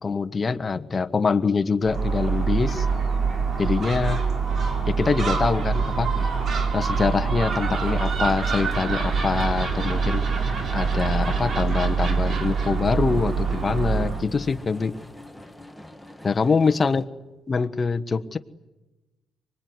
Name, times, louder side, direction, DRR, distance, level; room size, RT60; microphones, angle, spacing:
voice 1, 0.0-2.9 3.6-4.2 4.9-6.1 6.7-10.2 10.7-14.9 16.2-17.0 17.5-18.4, left 4 dB, 30° left, 8 dB, 1.3 m, -24 dB
Gull seagull, 1.8-14.3, right 5 dB, 50° right, 3.9 m, -25 dB
sound 1, 7.7-17.0, left 1 dB, ahead, 1.6 m, -41 dB
24.5 x 22.5 x 9.6 m, 1.1 s
cardioid pair, 95°, 0 cm